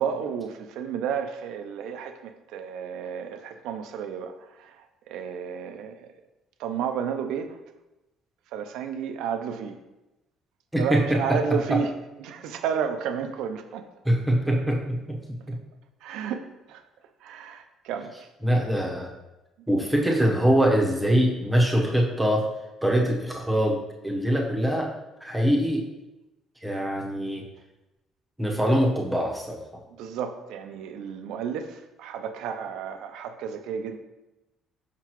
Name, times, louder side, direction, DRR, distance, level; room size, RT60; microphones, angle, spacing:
voice 1, 0.0-6.1 6.6-7.6 8.5-9.8 10.8-11.9 12.2-13.9 16.0-16.8 17.2-18.3 30.0-34.0, right 7 dB, 80° right, 8 dB, 0.5 m, -32 dB
voice 2, 14.0-15.6 18.4-19.1 19.7-22.4 22.8-24.9 25.2-25.8 26.6-27.4 28.4-29.6, equal, 5° right, -1 dB, 1.0 m, -23 dB
5.9 x 5.7 x 3.0 m, 1.0 s
cardioid pair, 150°, 0 cm